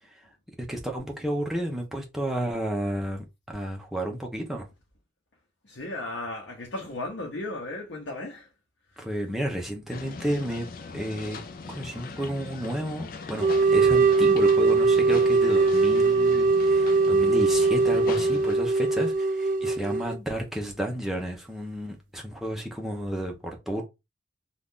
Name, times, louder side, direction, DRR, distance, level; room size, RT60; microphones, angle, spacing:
voice 1, 0.6-4.7 9.0-10.7 10.9-11.4 11.7-23.8, equal, ahead, 0.7 m, -32 dB
voice 2, 5.6-8.5, left 2 dB, 80° left, 0.9 m, -35 dB
sound 1, 9.9-18.6, left 4 dB, 50° left, 0.4 m, -40 dB
sound 2, 13.4-20.2, right 3 dB, 45° right, 0.3 m, -21 dB
2.8 x 2.5 x 3.6 m
head